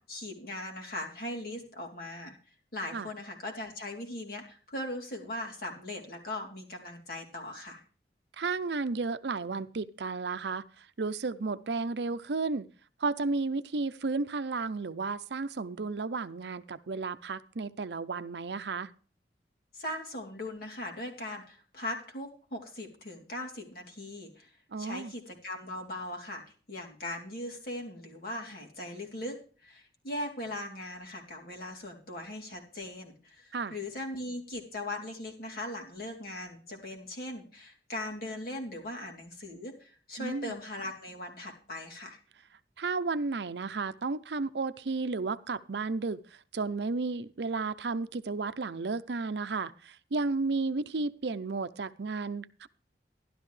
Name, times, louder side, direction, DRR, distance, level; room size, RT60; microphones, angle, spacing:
voice 1, 0.0-2.4 2.7-7.8 19.7-24.5 24.8-26.4 26.7-42.2, left 1 dB, 55° left, 0 dB, 3.2 m, -39 dB
voice 2, 8.4-12.7 13.0-18.9 24.7-25.1 33.5-33.7 40.2-40.6 42.8-46.2 46.5-52.7, right 3 dB, 75° right, 13 dB, 0.6 m, -33 dB
13.0 x 12.0 x 3.3 m, 0.40 s
head